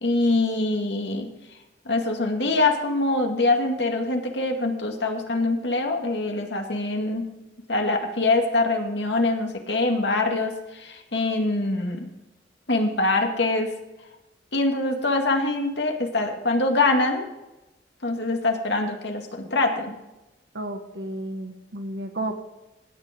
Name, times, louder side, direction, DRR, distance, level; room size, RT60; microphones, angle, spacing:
voice 1, 0.0-1.3 1.9-7.3 7.7-12.1 12.7-13.7 14.5-17.3 18.0-19.9, left 2 dB, 70° left, 3 dB, 2.1 m, -24 dB
voice 2, 20.5-22.4, right 1 dB, 70° right, 6 dB, 1.6 m, -32 dB
16.5 x 9.3 x 3.7 m, 0.99 s
head